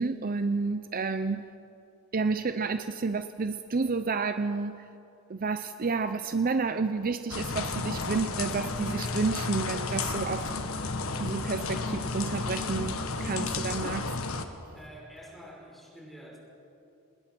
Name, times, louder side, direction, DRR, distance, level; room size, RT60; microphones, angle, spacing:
voice 1, 0.0-1.4 2.1-4.8 5.3-10.5 11.2-14.1, right 4 dB, 45° right, 10 dB, 0.6 m, -30 dB
sound 1, 7.3-14.4, left 3 dB, 85° left, 1.5 m, -32 dB
voice 2, 14.7-16.4, equal, ahead, -3 dB, 5.5 m, -48 dB
25.0 x 20.5 x 6.1 m, 2.7 s
head